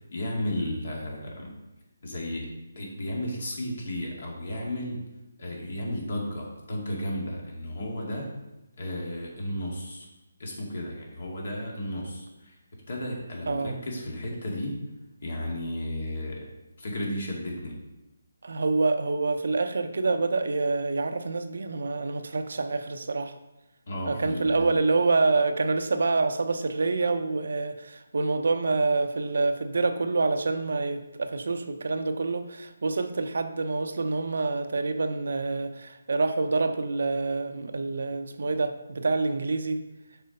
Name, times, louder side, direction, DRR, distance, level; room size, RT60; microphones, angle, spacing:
voice 1, 0.1-1.6 2.0-2.5 2.8-5.0 5.4-8.3 8.8-10.1 10.4-12.6 12.9-14.8 15.2-16.5 16.8-17.8 23.9-24.8, left 1 dB, 60° left, -1 dB, 2.3 m, -33 dB
voice 2, 13.5-13.8 18.4-23.4 24.1-39.8, right 3 dB, 65° right, 8 dB, 0.6 m, -27 dB
6.8 x 4.5 x 5.2 m, 0.99 s
figure-of-eight pair, 160°, 0 cm